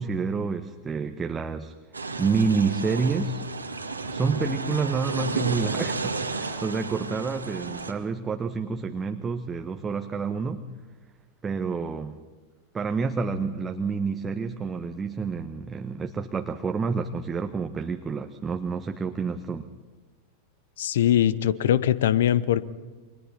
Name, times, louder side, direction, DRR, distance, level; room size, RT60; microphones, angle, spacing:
voice 1, 0.0-1.7 2.2-3.4 4.1-10.6 11.4-12.2 12.7-19.7, right 4 dB, 15° right, 5 dB, 1.1 m, -28 dB
sound 1, 1.9-7.9, right 4 dB, 80° right, 2.0 m, -32 dB
voice 2, 20.8-22.7, left 11 dB, 60° left, 17 dB, 1.0 m, -22 dB
29.5 x 25.5 x 4.3 m, 1.3 s
figure-of-eight pair, 90°, 0 cm